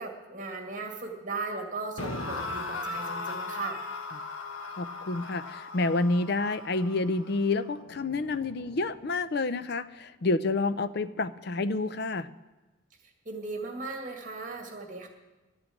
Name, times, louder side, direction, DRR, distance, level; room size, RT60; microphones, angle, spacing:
voice 1, 0.0-3.8 13.3-15.1, right 3 dB, 40° right, 3 dB, 2.0 m, -37 dB
sound 1, 2.0-9.1, left 3 dB, 80° left, 1.2 m, -38 dB
voice 2, 4.8-12.3, left 3 dB, 50° left, 14 dB, 0.5 m, -29 dB
12.5 x 8.8 x 8.5 m, 1.1 s
head